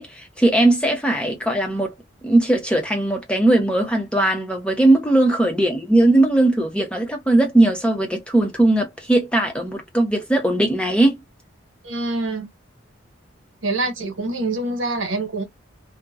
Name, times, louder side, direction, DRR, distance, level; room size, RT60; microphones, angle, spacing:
voice 1, 0.0-1.9 2.2-11.2, right 2 dB, 5° left, 0.7 m, -19 dB
voice 2, 11.8-12.5 13.6-15.4, right 2 dB, 75° right, 1.2 m, -25 dB
2.8 x 2.2 x 2.3 m
head